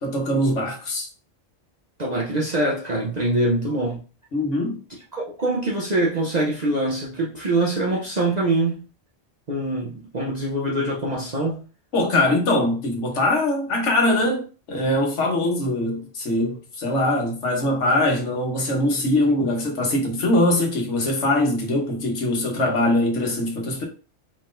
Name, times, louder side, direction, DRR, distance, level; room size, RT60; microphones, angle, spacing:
voice 1, 0.0-1.1 4.3-4.8 11.9-14.4 14.7-23.8, left 1 dB, 85° left, 1.5 m, -22 dB
voice 2, 2.0-4.0 5.1-8.8 9.5-11.6, right 2 dB, 40° right, 0.8 m, -24 dB
4.9 x 3.8 x 2.5 m
omnidirectional pair, 1.2 m